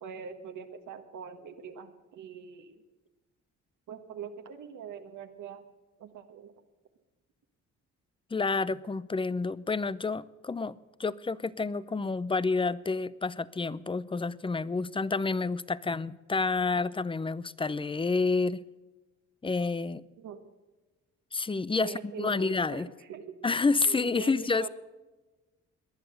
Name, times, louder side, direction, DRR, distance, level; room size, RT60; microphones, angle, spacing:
voice 1, 0.0-2.8 3.9-5.6 6.0-6.5 20.2-20.4 21.7-22.8 23.1-23.3 23.8-24.7, right 7 dB, 75° right, 4 dB, 1.6 m, -43 dB
voice 2, 8.3-10.7 11.0-18.6 19.4-20.0 21.3-22.9 23.4-24.7, left 4 dB, 15° left, 19 dB, 0.6 m, -29 dB
19.0 x 11.0 x 6.6 m, 1.2 s
cardioid pair, 90°, 30 cm